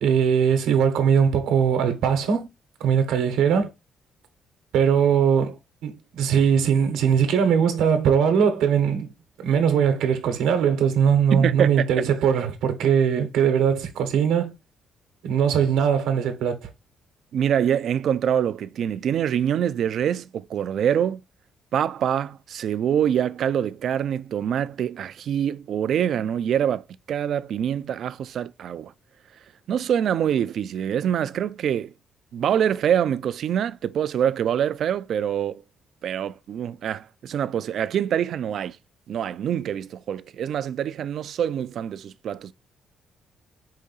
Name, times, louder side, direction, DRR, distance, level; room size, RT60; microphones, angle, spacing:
voice 1, 0.0-2.5 2.8-3.7 4.7-5.6 5.8-9.1 9.4-14.5 15.2-16.7, right 7 dB, 90° right, 1.0 m, -20 dB
voice 2, 11.3-12.1 17.3-21.2 21.7-28.9 29.7-31.9 32.3-35.6 36.0-38.8 39.1-42.5, right 9 dB, 65° right, 0.3 m, -25 dB
4.8 x 2.7 x 4.0 m
cardioid pair, 90°, 0 cm